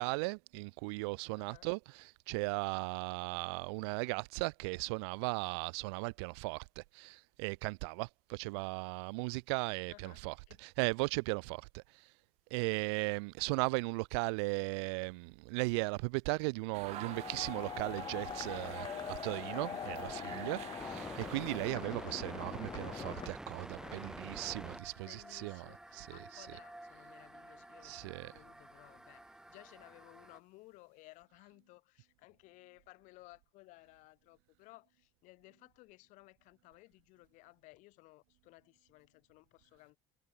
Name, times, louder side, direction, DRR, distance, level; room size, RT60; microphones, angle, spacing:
voice 1, 0.0-1.8 2.3-10.3 10.8-11.8 12.5-25.6 25.9-26.1 27.8-28.3, right 30 dB, 80° right, 0.5 m, -37 dB
voice 2, 1.3-1.7 9.9-10.7 23.7-24.2 25.0-40.0, left 22 dB, 65° left, 6.6 m, -59 dB
sound 1, 16.7-21.7, right 15 dB, 55° right, 0.9 m, -49 dB
sound 2, 16.9-23.3, left 8 dB, 35° left, 1.4 m, -43 dB
sound 3, 18.3-30.4, right 1 dB, 5° right, 0.5 m, -50 dB
supercardioid pair, 100°, 14 cm